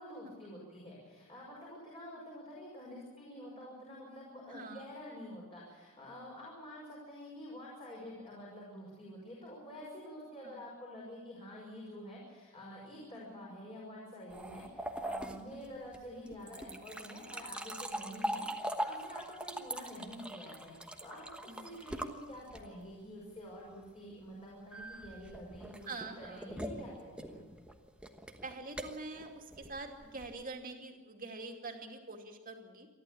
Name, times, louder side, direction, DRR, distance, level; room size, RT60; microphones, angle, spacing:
voice 1, 0.0-27.4, equal, 25° left, -4 dB, 6.1 m, -48 dB
voice 2, 4.5-4.9 10.4-10.6 13.1-13.5 21.5-21.8 25.9-26.5 28.4-32.9, right 3 dB, 40° right, 3 dB, 2.6 m, -45 dB
sound 1, 14.3-22.9 24.7-30.4, right 1 dB, 5° right, 1.2 m, -42 dB
28.5 x 12.0 x 8.6 m, 1.4 s
head